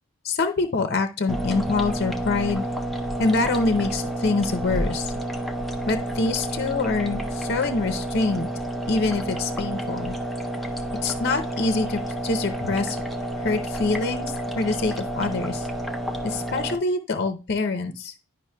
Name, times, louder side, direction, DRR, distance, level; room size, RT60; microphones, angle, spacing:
voice 1, 0.2-2.7 3.2-5.1 5.9-8.5 8.9-10.2 11.0-13.0 13.4-15.7 16.2-18.1, left 3 dB, 50° left, 7 dB, 0.6 m, -25 dB
sound 1, 1.3-16.8, right 1 dB, ahead, 0.4 m, -30 dB
11.0 x 5.2 x 2.2 m, 0.31 s
head